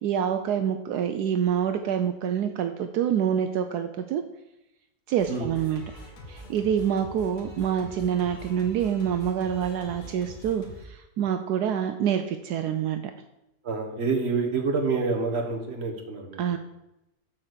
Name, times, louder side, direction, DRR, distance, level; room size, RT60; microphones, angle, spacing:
voice 1, 0.0-4.2 5.1-6.0 6.3-13.0 16.4-16.6, right 8 dB, 75° right, 7 dB, 1.1 m, -26 dB
Singing, 5.2-10.8, left 1 dB, 70° left, 2.1 m, -44 dB
voice 2, 13.6-16.4, right 4 dB, 40° right, 2 dB, 1.4 m, -27 dB
8.1 x 4.4 x 6.6 m, 0.91 s
omnidirectional pair, 1.7 m